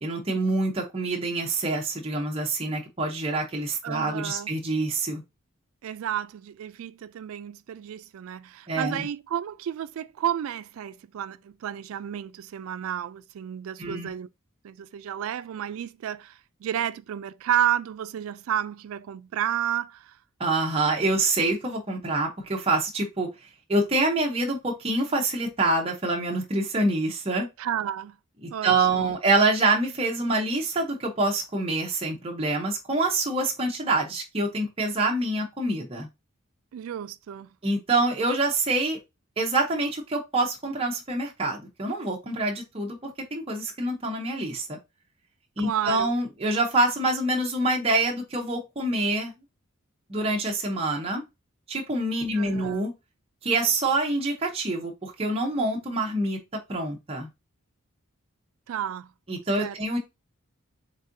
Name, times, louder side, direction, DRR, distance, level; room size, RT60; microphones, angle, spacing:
voice 1, 0.0-5.2 8.7-9.1 13.8-14.1 20.4-23.3 23.7-27.5 28.4-36.1 37.6-39.0 39.4-44.8 45.6-49.3 50.1-51.2 51.7-52.9 53.4-56.4 56.7-57.3 59.3-60.0, right 2 dB, 25° right, 0.7 m, -26 dB
voice 2, 3.8-4.5 5.8-14.3 14.6-20.1 27.6-28.2 28.5-29.1 36.7-37.5 45.6-46.1 52.3-52.8 58.7-59.1 59.6-59.8, right 10 dB, 75° right, 0.3 m, -31 dB
4.1 x 3.5 x 2.6 m
head